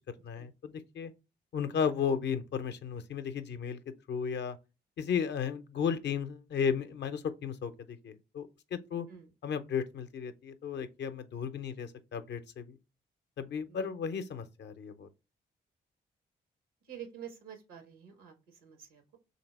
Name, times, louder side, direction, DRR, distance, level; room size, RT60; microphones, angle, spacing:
voice 1, 0.2-1.1 1.5-4.6 5.0-9.1 9.4-12.8 13.4-15.1, left 7 dB, 60° left, 0.6 m, -34 dB
voice 2, 16.8-19.2, right 9 dB, 90° right, 0.9 m, -48 dB
3.3 x 2.7 x 4.1 m
hypercardioid pair, 45°, 21 cm